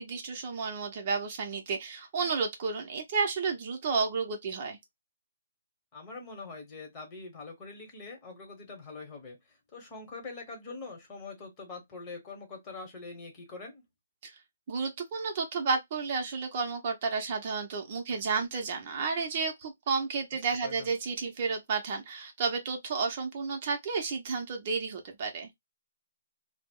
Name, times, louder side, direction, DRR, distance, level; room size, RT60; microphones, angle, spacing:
voice 1, 0.0-4.8 14.2-14.3 14.7-25.5, right 4 dB, 40° right, 0.6 m, -32 dB
voice 2, 5.9-13.8 20.3-20.9, left 3 dB, 25° left, 0.9 m, -44 dB
2.2 x 2.0 x 3.5 m
hypercardioid pair, 160°, 0 cm